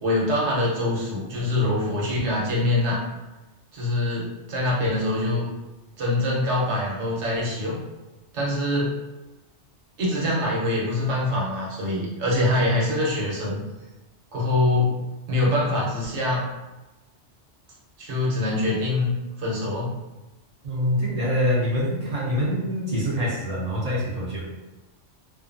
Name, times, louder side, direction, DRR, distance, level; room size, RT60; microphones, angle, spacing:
voice 1, 0.0-3.0 3.7-5.5 6.0-7.8 8.3-8.9 10.0-13.6 14.3-15.0 15.3-16.4 18.0-19.1 19.4-19.9, left 1 dB, 75° right, -4 dB, 1.1 m, -24 dB
voice 2, 20.6-24.5, equal, 45° right, -6 dB, 0.6 m, -25 dB
2.6 x 2.3 x 2.5 m, 1.1 s
omnidirectional pair, 1.2 m